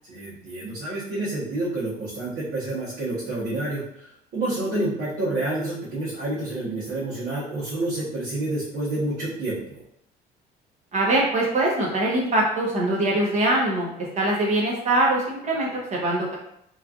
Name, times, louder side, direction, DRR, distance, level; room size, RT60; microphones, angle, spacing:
voice 1, 0.1-9.8, right 2 dB, 80° right, -9 dB, 1.0 m, -29 dB
voice 2, 10.9-16.3, right 1 dB, 45° right, -3 dB, 0.8 m, -23 dB
3.0 x 2.4 x 2.4 m, 0.75 s
cardioid pair, 110°, 17 cm